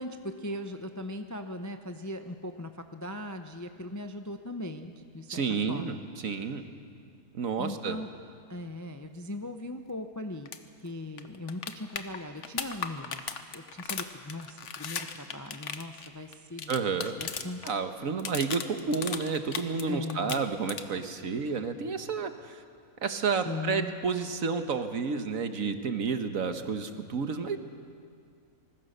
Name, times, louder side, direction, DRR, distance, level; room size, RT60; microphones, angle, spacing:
voice 1, 0.0-5.4 5.7-6.0 7.6-8.1 8.5-10.5 10.8-13.2 13.5-16.7 17.2-17.6 19.9-20.5 23.4-23.9, left 1 dB, 20° left, 7 dB, 0.5 m, -39 dB
voice 2, 5.3-6.6 7.3-8.0 16.7-17.1 17.6-22.6 23.0-27.6, right 5 dB, 65° right, 8 dB, 1.6 m, -30 dB
sound 1, 10.5-10.6 10.9-11.0 11.2-17.7 18.0-19.8 20.1-21.1 23.1-23.2, left 6 dB, 55° left, 1.3 m, -37 dB
25.0 x 20.0 x 6.7 m, 2.2 s
omnidirectional pair, 1.6 m